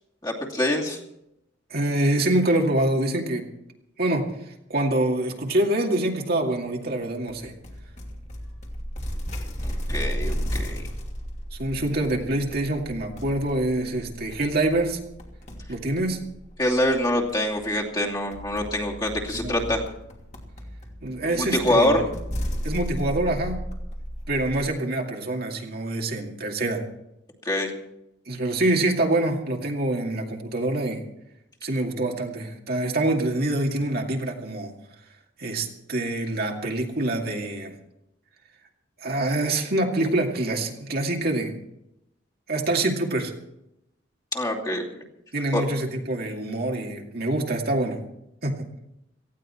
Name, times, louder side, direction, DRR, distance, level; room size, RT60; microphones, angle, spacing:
voice 1, 0.2-1.0 9.6-10.8 16.6-19.8 21.3-22.0 27.4-27.7 44.3-44.8 45.5-45.6, left 1 dB, 20° left, -2 dB, 2.6 m, -25 dB
voice 2, 1.7-3.5 4.0-4.3 4.7-7.5 11.6-15.0 15.7-16.2 19.3-19.6 21.0-22.0 22.6-23.6 24.3-26.9 28.3-31.0 31.6-34.7 35.4-37.7 39.0-41.6 42.5-43.3 45.3-48.0 48.4-48.7, right 1 dB, 55° right, 1 dB, 2.3 m, -25 dB
sound 1, 7.3-24.7, equal, 40° left, 2.8 m, -34 dB
18.5 x 15.0 x 4.5 m, 0.83 s
head